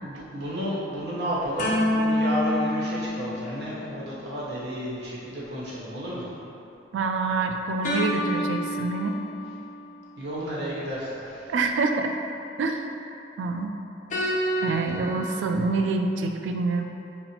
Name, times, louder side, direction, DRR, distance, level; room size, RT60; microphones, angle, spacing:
voice 1, 0.0-6.3 10.2-11.5 15.0-15.2, equal, 65° right, -7 dB, 0.9 m, -32 dB
sound 1, 1.6-4.1 7.8-9.7 14.1-15.5, equal, 45° left, 0.5 m, -28 dB
voice 2, 6.9-9.2 11.5-12.2 12.6-12.9 13.4-13.7 14.6-16.8, right 3 dB, 85° right, 4 dB, 0.3 m, -26 dB
5.8 x 2.0 x 2.7 m, 2.9 s
head